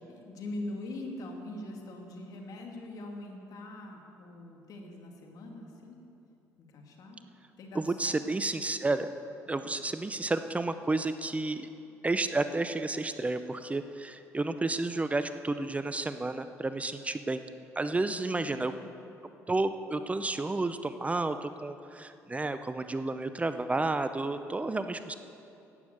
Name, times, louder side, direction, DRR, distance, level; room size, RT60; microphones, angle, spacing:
voice 1, 0.1-6.0 6.6-7.2 7.6-8.2 9.5-9.8 18.0-19.0, left 1 dB, 65° left, 1 dB, 2.4 m, -43 dB
voice 2, 7.7-9.1 9.5-11.7 12.0-17.4 17.8-18.7 19.5-25.1, right 2 dB, 20° right, 10 dB, 0.6 m, -31 dB
12.0 x 9.3 x 7.9 m, 2.8 s
supercardioid pair, 70°, 7 cm